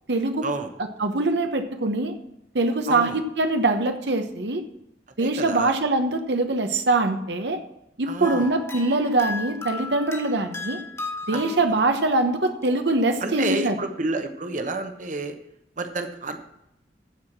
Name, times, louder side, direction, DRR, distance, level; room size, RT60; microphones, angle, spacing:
voice 1, 0.1-0.4 1.0-2.1 2.5-4.6 5.2-7.6 8.0-10.8 11.3-13.8, right 2 dB, 75° right, 7 dB, 1.0 m, -23 dB
voice 2, 2.9-3.2 5.2-5.7 8.1-8.5 11.3-11.6 13.2-15.3 15.8-16.4, right 3 dB, 45° right, 7 dB, 1.0 m, -29 dB
sound 1, 8.2-13.4, left 3 dB, 15° left, 1.6 m, -36 dB
14.5 x 4.8 x 7.3 m, 0.85 s
head